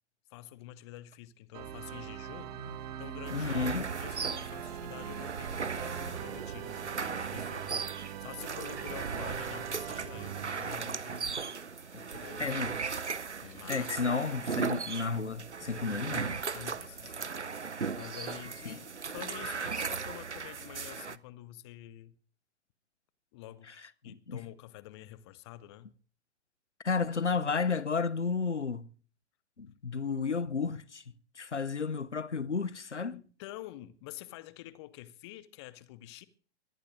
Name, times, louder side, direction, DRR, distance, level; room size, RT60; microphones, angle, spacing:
voice 1, 0.3-2.6 3.0-7.8 8.2-11.4 12.1-12.6 13.4-13.9 16.5-17.3 18.0-18.8 19.1-22.2 23.3-23.7 24.0-26.0 32.7-36.3, left 14 dB, 25° left, 0.7 m, -48 dB
Organ, 1.5-10.6, right 10 dB, 35° right, 1.4 m, -42 dB
voice 2, 3.3-3.9 11.9-12.0 12.4-12.7 13.7-16.4 18.7-18.8 24.1-24.4 26.8-28.9 29.6-31.0 31.4-33.2, left 5 dB, 85° left, 0.7 m, -32 dB
sound 1, 3.3-21.2, right 5 dB, 90° right, 0.6 m, -37 dB
sound 2, 9.7-15.3, right 2 dB, 5° right, 1.7 m, -64 dB
22.5 x 18.0 x 2.6 m
figure-of-eight pair, 115°, 34 cm